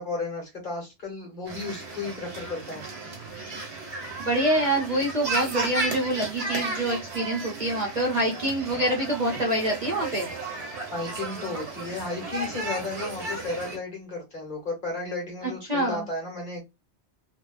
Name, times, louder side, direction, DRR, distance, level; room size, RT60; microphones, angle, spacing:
voice 1, 0.0-2.8 10.9-16.6, left 3 dB, 45° left, 1.1 m, -34 dB
sound 1, 1.5-13.8, right 2 dB, 70° right, 1.2 m, -34 dB
voice 2, 4.2-10.3 15.7-16.1, right 1 dB, 40° right, 0.8 m, -26 dB
2.6 x 2.3 x 2.2 m
omnidirectional pair, 1.2 m